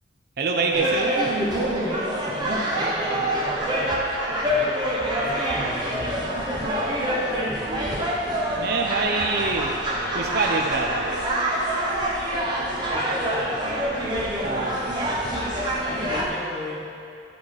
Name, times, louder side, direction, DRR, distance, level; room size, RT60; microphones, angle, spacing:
voice 1, 0.4-1.2 8.6-9.8 10.1-11.1 14.4-14.8, right 3 dB, 55° right, 1 dB, 0.5 m, -25 dB
sound 1, 0.7-16.3, right 1 dB, 25° right, 1.0 m, -26 dB
voice 2, 2.6-3.9 4.4-6.1 6.8-7.6 12.6-13.8 15.8-16.8, left 1 dB, ahead, -8 dB, 1.4 m, -36 dB
10.5 x 3.9 x 4.8 m, 2.5 s
head